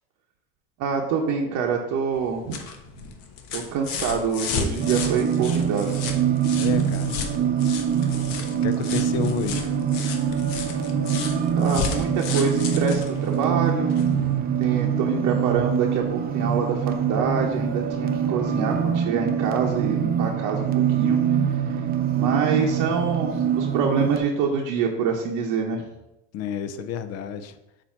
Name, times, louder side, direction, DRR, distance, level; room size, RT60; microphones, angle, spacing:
voice 1, 0.8-2.6 3.0-3.1 3.5-6.0 11.5-14.3 14.6-20.7 21.0-21.2 22.1-25.8, right 5 dB, 50° right, 0 dB, 0.9 m, -26 dB
sound 1, 2.1-14.2 15.5-15.6, left 6 dB, 60° left, 1.1 m, -34 dB
sound 2, 4.8-24.2, right 8 dB, 25° right, 0.5 m, -24 dB
voice 2, 6.5-7.3 8.5-9.7 26.3-27.6, left 7 dB, 40° left, 11 dB, 0.6 m, -30 dB
7.2 x 2.8 x 5.5 m, 0.90 s
supercardioid pair, 125°, 38 cm